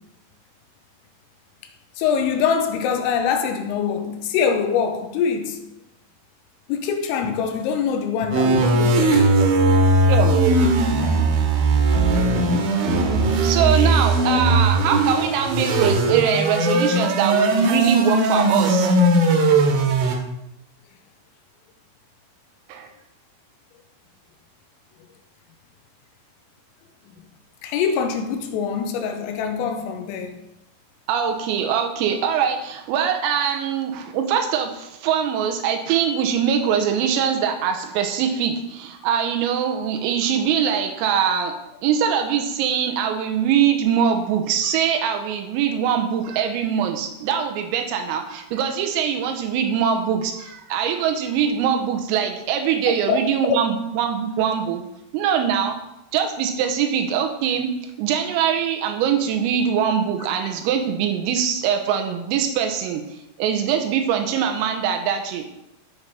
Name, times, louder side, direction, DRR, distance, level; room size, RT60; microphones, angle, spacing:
voice 1, 2.0-5.6 6.7-9.3 11.0-11.2 19.4-19.5 27.6-30.3 33.3-33.4 53.1-53.2 53.5-53.6, left 6 dB, 85° left, 3.4 m, -24 dB
sound 1, 8.3-20.2, right 2 dB, 70° right, 3.3 m, -18 dB
voice 2, 13.4-18.9 22.7-22.9 31.1-41.5 41.8-54.8 55.1-55.8 56.1-57.7 58.0-63.0 63.4-65.4, right 8 dB, 90° right, 3.5 m, -22 dB
14.0 x 5.4 x 4.2 m
omnidirectional pair, 6.0 m